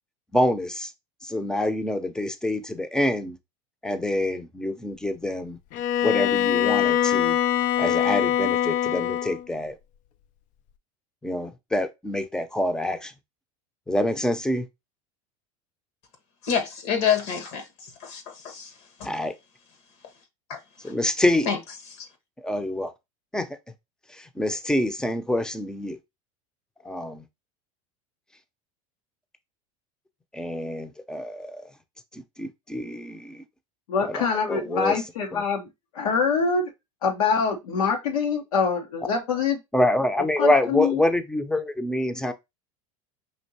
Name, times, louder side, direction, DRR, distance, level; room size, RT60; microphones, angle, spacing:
voice 1, 0.3-0.9 1.2-3.4 3.8-5.6 6.0-7.4 7.8-9.8 11.2-13.1 13.9-14.6 19.0-19.3 20.8-21.5 22.4-22.9 23.3-23.6 24.1-26.0 26.8-27.2 30.3-31.7 32.1-33.4 34.0-35.0 35.3-35.4 39.0-39.1 39.7-42.3, left 1 dB, 5° left, 0.6 m, -26 dB
Bowed string instrument, 5.7-9.4, left 10 dB, 45° left, 0.4 m, -23 dB
voice 2, 16.4-17.6 18.0-18.7 19.0-19.1 20.5-20.6 21.5-21.6, left 7 dB, 65° left, 1.3 m, -26 dB
voice 3, 33.9-35.7 35.9-36.7 37.0-39.6 40.4-41.0, left 5 dB, 90° left, 1.1 m, -24 dB
5.4 x 2.8 x 2.8 m
supercardioid pair, 105°, 18 cm